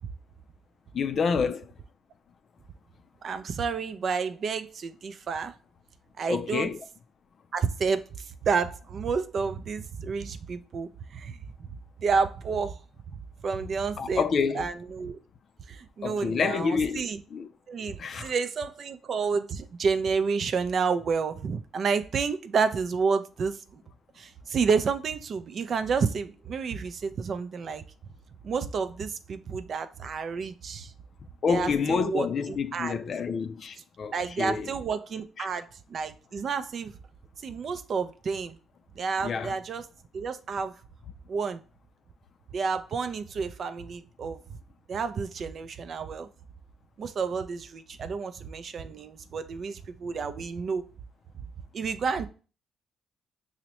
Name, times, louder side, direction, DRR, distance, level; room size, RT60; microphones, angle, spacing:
voice 1, 0.9-1.7 6.3-6.9 14.0-14.7 16.0-17.5 18.0-18.3 31.4-34.7 35.4-35.5 39.2-39.6, left 5 dB, 55° left, 0.3 m, -28 dB
voice 2, 3.2-5.5 6.2-6.7 7.5-8.0 8.4-11.4 12.0-12.8 13.1-13.2 13.4-14.2 14.5-15.2 15.7-17.2 17.7-23.8 24.2-27.8 28.4-30.9 31.5-32.3 32.7-32.9 34.1-36.9 37.4-38.6 39.0-39.8 40.1-40.8 41.3-41.6 42.5-44.4 44.9-46.3 47.0-50.8 51.7-52.3, right 5 dB, 55° right, 0.4 m, -30 dB
5.6 x 2.1 x 2.9 m
cardioid pair, 90°, 0 cm